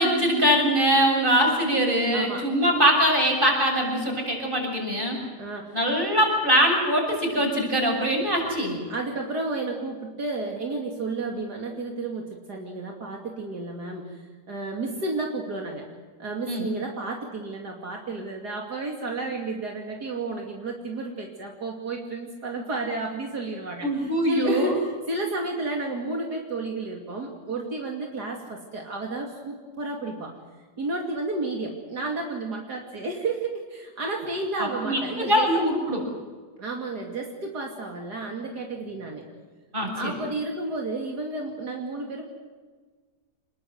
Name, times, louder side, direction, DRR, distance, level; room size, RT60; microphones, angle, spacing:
voice 1, 0.0-5.2 5.7-8.8 16.5-16.7 23.8-24.8 34.6-36.0 39.7-40.1, equal, 30° right, 1 dB, 7.5 m, -22 dB
voice 2, 2.1-2.5 5.4-5.8 8.9-15.9 16.2-30.4 30.8-35.5 36.6-39.3 40.0-42.2, right 2 dB, 75° right, 0 dB, 3.2 m, -32 dB
27.0 x 21.5 x 7.9 m, 1.5 s
omnidirectional pair, 1.7 m